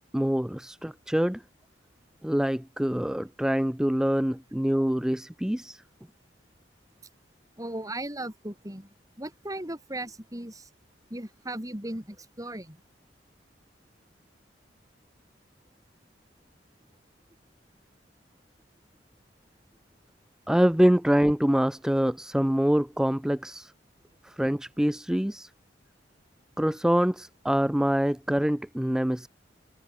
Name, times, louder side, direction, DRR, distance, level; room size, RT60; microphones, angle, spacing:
voice 1, 0.1-1.4 2.2-5.8 20.5-23.7 24.2-25.5 26.6-29.3, equal, 5° right, 0.4 m, -25 dB
voice 2, 7.6-10.7 11.1-12.8, right 1 dB, 20° right, 5.2 m, -37 dB
head